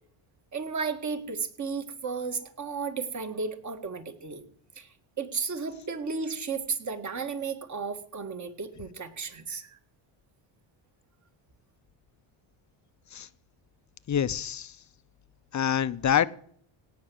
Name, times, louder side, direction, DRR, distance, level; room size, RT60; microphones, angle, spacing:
voice 1, 0.5-4.4 4.8-4.9 5.2-9.8, right 5 dB, 35° right, 8 dB, 1.7 m, -34 dB
voice 2, 14.1-14.7 15.5-16.3, left 9 dB, 35° left, 15 dB, 0.6 m, -26 dB
17.5 x 6.0 x 7.8 m, 0.63 s
cardioid pair, 130°, 49 cm